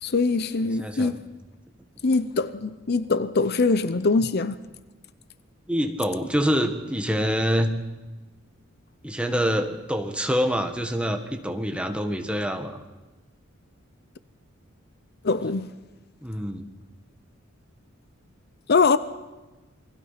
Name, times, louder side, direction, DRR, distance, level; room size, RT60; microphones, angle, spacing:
voice 1, 0.0-1.2 2.0-4.5 15.2-15.7 18.7-19.0, left 4 dB, 50° left, 0.7 m, -22 dB
voice 2, 0.6-1.1 5.7-7.7 9.0-12.8 16.2-16.7, equal, 5° right, 1.6 m, -26 dB
28.5 x 21.0 x 5.8 m
head